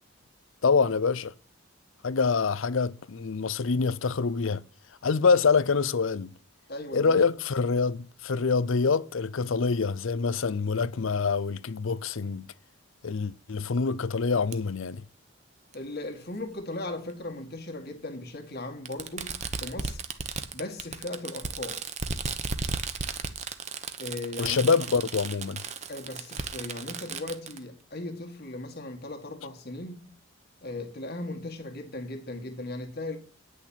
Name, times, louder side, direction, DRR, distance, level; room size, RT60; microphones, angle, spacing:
voice 1, 0.6-1.3 2.0-4.6 5.0-6.3 6.9-12.5 13.0-15.0 24.4-25.6, left 5 dB, 70° left, 0.5 m, -25 dB
voice 2, 6.7-7.1 15.7-20.0 20.5-21.8 24.0-24.7 25.9-30.0 30.6-33.2, left 2 dB, 45° left, 2.1 m, -37 dB
Fireworks, 14.5-14.6 15.7-15.8 17.1-17.2 18.8-27.6, right 5 dB, 30° right, 0.9 m, -35 dB
9.9 x 6.5 x 8.9 m
head